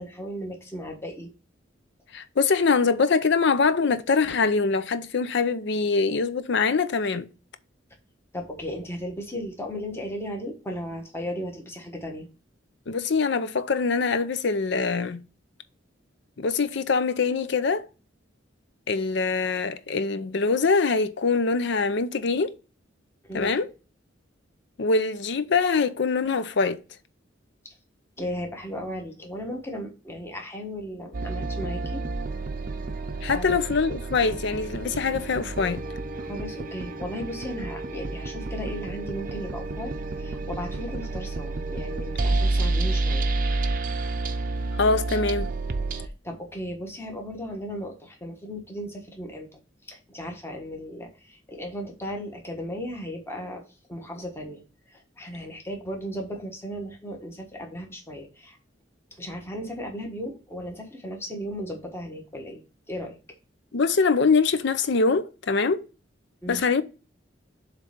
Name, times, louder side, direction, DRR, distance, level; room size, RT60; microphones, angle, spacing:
voice 1, 0.0-1.3 8.3-12.3 23.2-23.5 28.2-32.0 33.3-33.6 36.2-43.3 45.9-49.6 49.9-53.6 53.9-54.6 54.9-58.6 59.2-62.6 62.9-63.2 66.4-66.6, equal, 15° left, 1.2 m, -36 dB
voice 2, 2.1-7.3 12.9-15.2 16.4-17.9 18.9-22.5 23.3-23.7 24.8-26.8 33.2-35.8 44.8-45.5 63.7-65.9 66.5-66.8, left 4 dB, 65° left, 0.6 m, -23 dB
sound 1, 31.1-46.1, right 2 dB, 45° right, 0.6 m, -30 dB
7.3 x 3.2 x 5.1 m
head